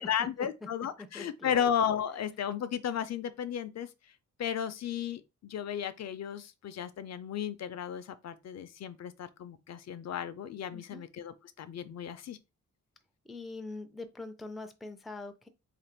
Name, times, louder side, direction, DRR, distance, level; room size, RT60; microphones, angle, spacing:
voice 1, 0.0-3.9 4.4-12.4, left 8 dB, 60° left, 0.5 m, -34 dB
voice 2, 1.0-1.6 10.7-11.0 13.3-15.5, left 3 dB, ahead, 0.3 m, -43 dB
2.9 x 2.5 x 4.3 m
wide cardioid pair, 135°, 30 cm